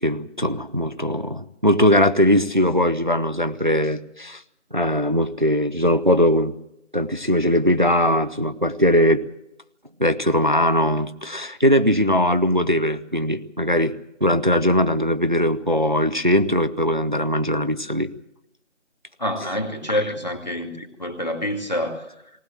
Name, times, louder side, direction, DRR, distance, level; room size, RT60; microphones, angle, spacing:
voice 1, 0.0-4.4 4.7-6.5 6.9-9.2 10.0-13.9 14.2-18.1 19.9-20.0, equal, 40° right, 11 dB, 0.8 m, -20 dB
voice 2, 19.2-22.1, left 1 dB, 35° left, 4 dB, 2.4 m, -27 dB
19.5 x 19.0 x 7.5 m, 0.82 s
figure-of-eight pair, 175°, 37 cm